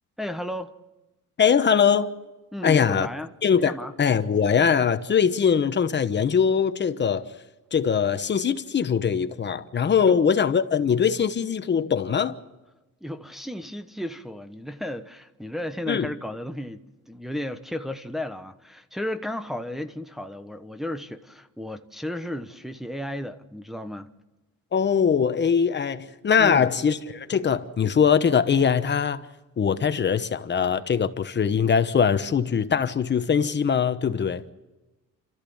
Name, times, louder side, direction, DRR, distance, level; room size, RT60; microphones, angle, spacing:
voice 1, 0.2-0.7 2.5-3.3 3.5-3.9 10.0-10.2 13.0-24.1 26.4-26.7, left 1 dB, ahead, 1.1 m, -34 dB
voice 2, 1.4-2.1 2.6-3.1 3.4-7.3 7.7-12.3 15.9-16.1 24.7-29.2 29.6-34.4, left 7 dB, 35° left, 1.1 m, -22 dB
29.5 x 14.0 x 7.2 m
cardioid pair, 125°, 32 cm